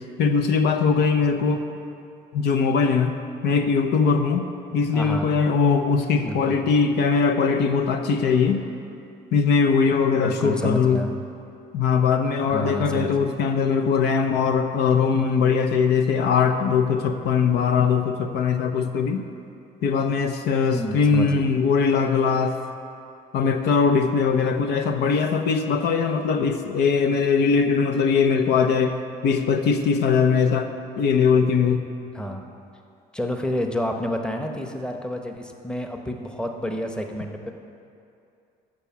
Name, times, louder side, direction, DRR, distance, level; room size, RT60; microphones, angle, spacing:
voice 1, 0.2-1.6 2.3-4.5 4.7-8.6 9.3-11.0 11.7-19.2 19.8-22.6 23.3-29.0 29.2-30.7 31.0-31.8, left 5 dB, 80° left, 7 dB, 0.8 m, -21 dB
voice 2, 4.9-5.3 6.2-6.6 10.1-11.1 12.5-13.3 20.6-21.5 32.1-32.5 33.1-37.5, equal, 5° left, 4 dB, 0.9 m, -29 dB
13.5 x 5.0 x 7.0 m, 2.6 s
cardioid pair, 110°, 17 cm